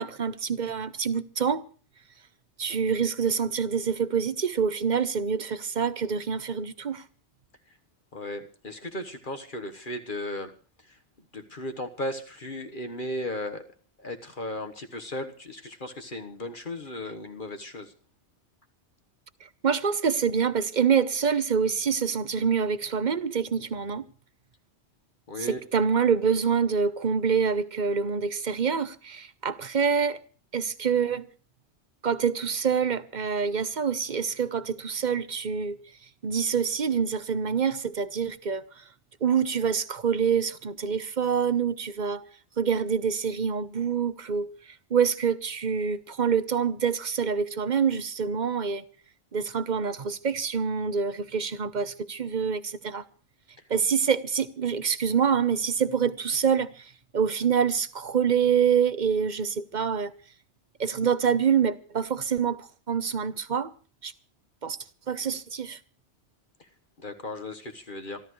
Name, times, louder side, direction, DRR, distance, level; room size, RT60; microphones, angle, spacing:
voice 1, 0.0-1.6 2.6-7.0 19.6-24.0 25.4-30.2 30.5-31.3 32.0-35.8 36.2-38.6 39.2-42.3 42.6-44.5 44.9-48.8 49.3-53.0 53.7-56.9 57.1-60.1 60.8-63.7 64.0-64.1 64.6-64.8 65.1-65.8, right 6 dB, 45° right, 0.9 m, -26 dB
voice 2, 8.1-10.5 10.9-11.0 11.3-13.6 14.0-17.9 25.3-25.6 67.0-68.2, left 1 dB, 45° left, 1.5 m, -36 dB
26.5 x 13.0 x 3.1 m
omnidirectional pair, 1.2 m